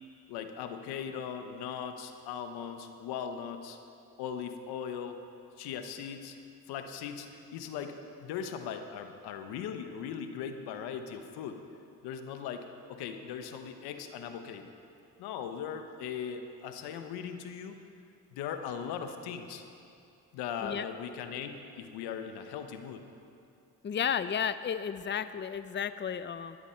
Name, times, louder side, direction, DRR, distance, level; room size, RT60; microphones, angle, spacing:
voice 1, 0.3-3.8 4.2-5.2 5.6-6.4 6.7-11.6 12.0-14.7 15.2-17.8 18.3-19.6 20.3-23.0, left 7 dB, 90° left, 7 dB, 1.0 m, -39 dB
voice 2, 23.8-26.6, left 8 dB, 30° left, 13 dB, 0.6 m, -33 dB
17.5 x 12.0 x 4.5 m, 2.6 s
supercardioid pair, 60°, 38 cm